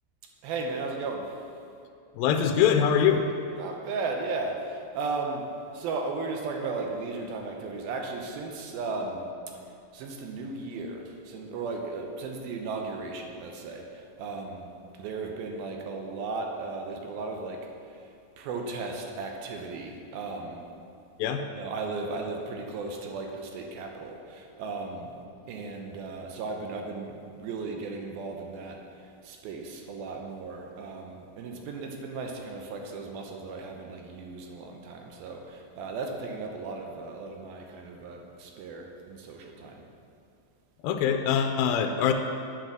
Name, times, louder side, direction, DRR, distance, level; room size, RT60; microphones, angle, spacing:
voice 1, 0.4-1.4 3.5-5.5 5.7-9.3 9.9-18.1 18.4-20.7 21.5-25.2 25.5-39.8, right 3 dB, 80° right, 2 dB, 2.7 m, -36 dB
voice 2, 2.2-3.3 21.2-21.4 40.8-42.1, left 8 dB, 85° left, 5 dB, 2.3 m, -23 dB
8.0 x 6.7 x 6.1 m, 2.6 s
omnidirectional pair, 4.2 m